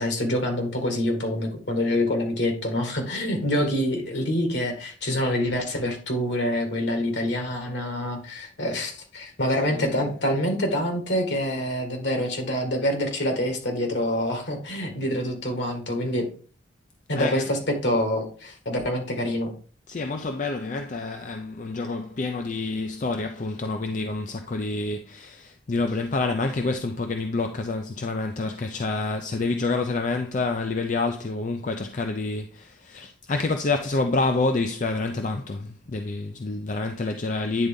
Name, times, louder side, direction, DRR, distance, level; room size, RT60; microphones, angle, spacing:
voice 1, 0.0-16.3 17.1-19.5, left 1 dB, 65° left, 1.8 m, -26 dB
voice 2, 17.1-17.5 19.9-37.7, left 3 dB, 40° left, 0.4 m, -28 dB
9.6 x 3.9 x 3.6 m
head